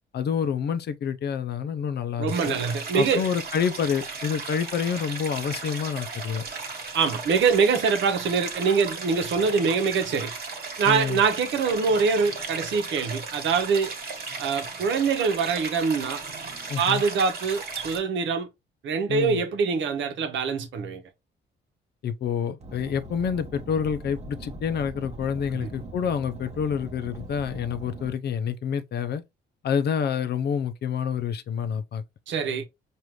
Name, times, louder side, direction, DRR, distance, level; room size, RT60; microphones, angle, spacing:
voice 1, 0.1-2.6 2.9-6.4 10.9-11.2 16.7-17.0 19.1-19.4 22.0-29.2 29.6-32.0, left 7 dB, 55° left, 0.5 m, -28 dB
voice 2, 2.2-3.2 6.9-10.3 10.8-13.9 14.4-16.2 16.8-18.5 18.8-21.0 25.6-25.7 32.3-32.7, right 5 dB, 70° right, 0.9 m, -24 dB
Stream, 2.3-18.0, right 4 dB, 50° right, 1.4 m, -36 dB
Car, 22.6-28.1, right 2 dB, 35° right, 1.0 m, -41 dB
4.9 x 2.6 x 3.0 m
cardioid pair, 90°, 20 cm